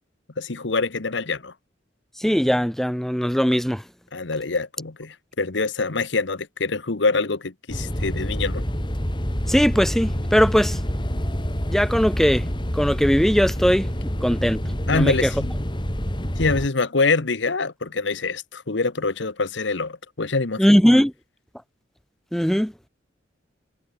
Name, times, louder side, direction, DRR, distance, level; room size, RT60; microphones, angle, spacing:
voice 1, 0.4-1.5 4.1-8.6 14.9-15.6 16.4-20.7, left 3 dB, 70° left, 1.1 m, -25 dB
voice 2, 2.2-3.8 9.5-10.7 11.7-12.4 12.8-13.9 14.2-14.6 14.9-15.1 20.6-21.1 22.3-22.7, equal, ahead, 0.6 m, -19 dB
sound 1, 7.7-16.7, equal, 25° left, 3.9 m, -27 dB
head